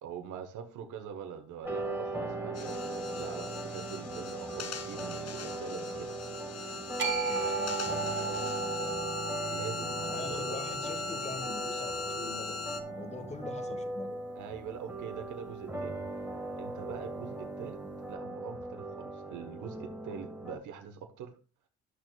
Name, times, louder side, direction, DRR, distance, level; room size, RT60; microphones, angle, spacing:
voice 1, 0.0-6.1 9.5-10.6 14.3-16.0 16.6-21.3, right 7 dB, 80° right, 5 dB, 1.2 m, -43 dB
sound 1, 1.6-20.6, right 2 dB, 10° right, 1.9 m, -38 dB
sound 2, 2.6-12.8, left 5 dB, 55° left, 1.0 m, -40 dB
voice 2, 7.0-9.0 10.0-12.6 12.9-14.2, left 2 dB, 20° left, 10 dB, 1.2 m, -44 dB
sound 3, 7.0-13.2, right 6 dB, 40° right, 1.7 m, -38 dB
11.0 x 6.3 x 2.3 m, 0.35 s
cardioid pair, 90°, 30 cm